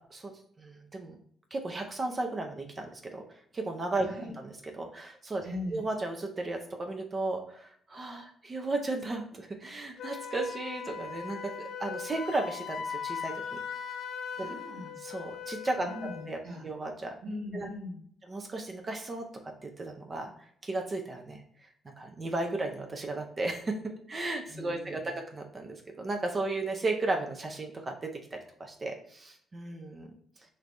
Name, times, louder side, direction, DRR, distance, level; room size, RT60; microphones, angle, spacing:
voice 1, 0.6-1.2 1.5-3.2 3.5-4.1 4.4-5.4 5.7-13.6 14.4-14.5 15.0-15.9 16.3-17.1 17.5-17.7 18.3-19.3 19.6-20.3 20.6-21.4 21.9-30.1, right 2 dB, 30° right, 3 dB, 0.5 m, -35 dB
voice 2, 5.4-5.8 14.3-15.0 15.8-16.7 17.2-18.0 24.5-25.1, left 1 dB, 80° right, -6 dB, 1.4 m, -40 dB
Wind instrument woodwind instrument, 10.0-16.3, left 7 dB, 75° left, 0.3 m, -39 dB
3.2 x 2.5 x 3.2 m, 0.65 s
cardioid pair, 90°, 0 cm